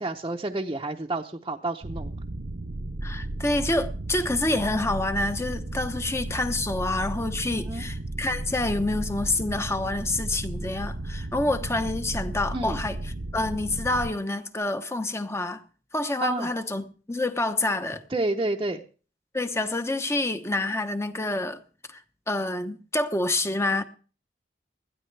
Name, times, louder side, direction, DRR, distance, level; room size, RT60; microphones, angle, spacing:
voice 1, 0.0-2.1 7.7-7.9 12.5-12.8 16.2-16.5 18.1-18.8, right 2 dB, 25° right, 0.8 m, -29 dB
sound 1, 1.8-14.1, right 2 dB, 65° right, 0.9 m, -34 dB
voice 2, 3.0-13.0 13.3-15.6 15.9-18.0 19.3-21.6 21.9-22.0 22.3-23.8, left 2 dB, 15° left, 1.0 m, -27 dB
20.0 x 13.0 x 3.3 m
head